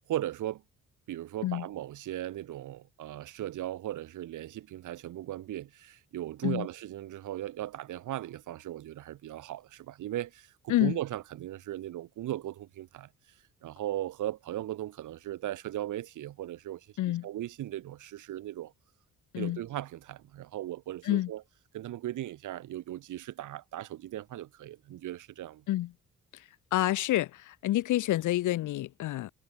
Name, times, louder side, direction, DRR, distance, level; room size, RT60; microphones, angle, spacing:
voice 1, 0.1-0.6 1.1-13.1 13.6-16.9 17.2-18.7 19.4-21.4 21.7-25.6, right 13 dB, 80° right, 5.6 m, -37 dB
voice 2, 26.7-29.3, left 15 dB, 85° left, 2.9 m, -28 dB
cardioid pair, 90°, 30 cm